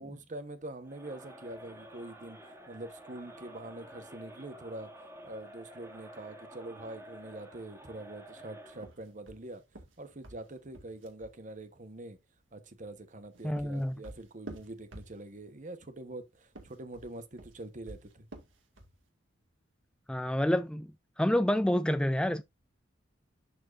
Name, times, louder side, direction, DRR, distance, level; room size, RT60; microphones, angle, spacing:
voice 1, 0.0-2.4 2.7-4.9 5.2-9.6 10.0-12.2 12.5-18.3, right 2 dB, 40° right, 1.1 m, -44 dB
Crowd, 0.8-8.9, right 1 dB, 15° right, 2.1 m, -50 dB
sound 1, 8.7-11.4 13.1-15.5 16.4-19.0, right 1 dB, 80° right, 2.1 m, -50 dB
voice 2, 13.4-14.0 20.1-20.9 21.2-22.4, left 1 dB, 5° left, 0.3 m, -28 dB
11.5 x 4.5 x 2.6 m
head